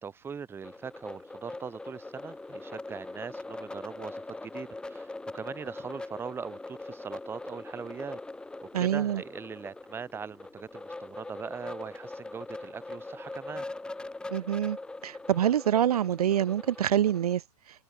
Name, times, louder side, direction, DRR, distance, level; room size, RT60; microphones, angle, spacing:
voice 1, 0.0-8.2 8.6-13.6, right 6 dB, 10° right, 2.4 m, -41 dB
sound 1, 0.6-17.3, left 2 dB, 5° left, 4.0 m, -42 dB
voice 2, 8.7-9.2 14.3-14.8 15.0-17.4, right 10 dB, 70° right, 1.6 m, -26 dB
hypercardioid pair, 150°, 20 cm